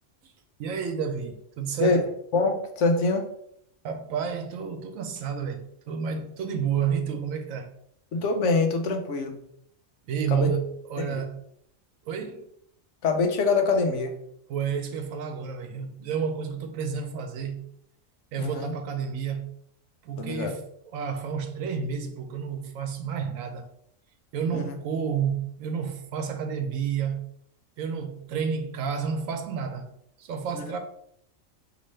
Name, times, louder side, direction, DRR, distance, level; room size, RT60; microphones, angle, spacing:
voice 1, 0.6-2.0 3.8-7.7 10.1-11.4 12.0-12.5 14.5-17.7 18.3-19.5 20.0-20.6 20.9-23.7 24.3-27.3 27.8-29.9 30.2-30.8, right 7 dB, 90° right, 1.1 m, -30 dB
voice 2, 2.3-3.3 8.1-9.4 10.3-10.5 11.0-11.3 13.0-14.2 18.4-18.7 20.2-20.5 24.5-24.7 30.5-30.7, left 3 dB, 70° left, 1.0 m, -25 dB
5.3 x 3.0 x 3.2 m
omnidirectional pair, 1.3 m